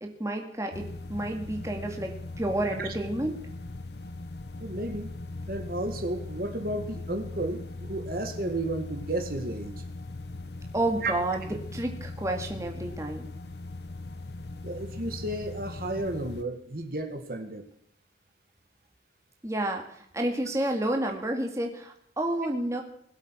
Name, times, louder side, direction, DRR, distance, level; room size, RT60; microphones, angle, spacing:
voice 1, 0.0-3.4 10.7-13.3 19.4-22.8, right 1 dB, 15° right, 2 dB, 2.3 m, -30 dB
sound 1, 0.7-16.4, left 2 dB, 65° left, 0.9 m, -40 dB
voice 2, 4.6-5.1 5.5-9.7 11.0-11.1 14.6-17.7, right 1 dB, 50° right, 5 dB, 2.0 m, -33 dB
21.5 x 8.3 x 6.3 m, 0.68 s
head